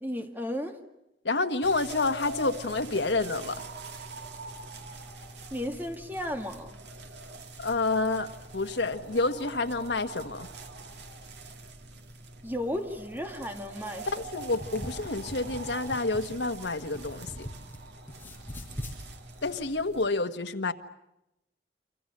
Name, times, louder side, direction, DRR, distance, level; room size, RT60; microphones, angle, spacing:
voice 1, 0.0-0.8 5.5-6.7 12.4-14.1, equal, 10° right, 5 dB, 2.1 m, -34 dB
voice 2, 1.2-3.6 7.6-10.5 14.1-17.5 19.4-20.7, left 3 dB, 75° left, 7 dB, 1.5 m, -29 dB
sound 1, 1.6-20.1, right 2 dB, 75° right, 2.2 m, -44 dB
sound 2, 14.2-17.8 18.1-19.0, equal, 10° left, 5.6 m, -41 dB
29.0 x 25.0 x 6.8 m, 0.86 s
head